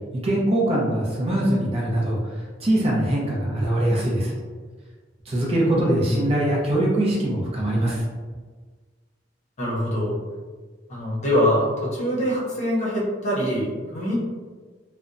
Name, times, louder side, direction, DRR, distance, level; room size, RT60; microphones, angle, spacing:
voice 1, 0.1-4.3 5.3-8.0, right 1 dB, 35° right, -4 dB, 0.6 m, -22 dB
voice 2, 5.7-6.3 9.6-10.2 10.9-14.2, equal, 40° left, -6 dB, 0.8 m, -24 dB
2.8 x 2.1 x 2.5 m, 1.4 s
head